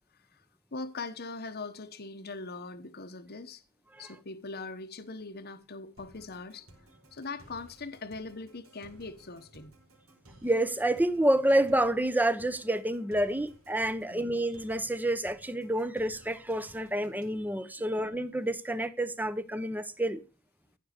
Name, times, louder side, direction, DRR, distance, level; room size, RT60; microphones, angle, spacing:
voice 1, 0.1-0.4 0.7-3.6 4.0-6.7 7.1-9.7 14.1-14.3, left 3 dB, 50° left, 1.1 m, -41 dB
sound 1, 6.0-17.4, right 1 dB, 85° right, 5.0 m, -57 dB
voice 2, 10.4-20.2, right 1 dB, 10° right, 1.0 m, -28 dB
15.0 x 6.5 x 6.6 m
head